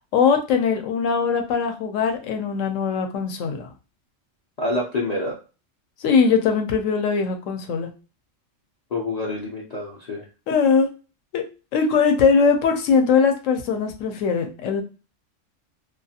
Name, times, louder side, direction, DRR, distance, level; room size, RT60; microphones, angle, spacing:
voice 1, 0.1-3.7 6.0-7.9 10.5-10.9 11.3-11.4 11.7-14.8, left 5 dB, 80° left, 5 dB, 0.9 m, -20 dB
voice 2, 4.6-5.4 8.9-10.2, left 2 dB, 50° left, -3 dB, 0.5 m, -27 dB
2.4 x 2.3 x 2.7 m, 0.33 s
omnidirectional pair, 1.3 m